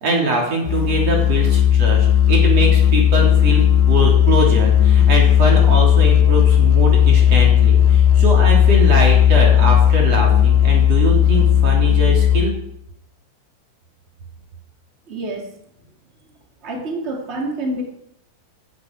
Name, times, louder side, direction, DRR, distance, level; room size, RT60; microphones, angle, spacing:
voice 1, 0.0-12.5, right 2 dB, 35° right, -1 dB, 3.9 m, -22 dB
Musical instrument, 0.7-12.7, left 10 dB, 80° left, 2.6 m, -14 dB
voice 2, 15.1-15.5 16.6-17.8, right 2 dB, 50° right, 0 dB, 0.7 m, -27 dB
15.5 x 12.5 x 4.8 m, 0.75 s
omnidirectional pair, 5.7 m